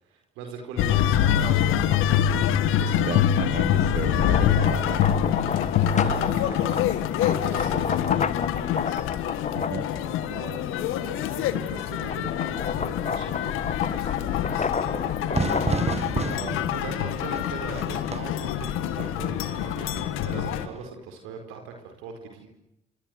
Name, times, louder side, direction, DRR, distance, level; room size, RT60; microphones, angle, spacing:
voice 1, 0.0-3.2 5.9-9.5 9.9-22.5, right 5 dB, 85° right, 5 dB, 4.7 m, -40 dB
sound 1, 0.8-20.7, left 10 dB, 80° left, 1.8 m, -25 dB
voice 2, 3.1-5.4 9.5-9.9, right 8 dB, 55° right, 17 dB, 1.4 m, -34 dB
sound 2, 4.0-10.6 11.1-18.3, left 5 dB, 35° left, 1.3 m, -32 dB
Fire / Fireworks, 15.3-20.9, right 4 dB, 30° right, 1.5 m, -32 dB
27.5 x 27.0 x 8.0 m, 0.84 s
supercardioid pair, 55°, 21 cm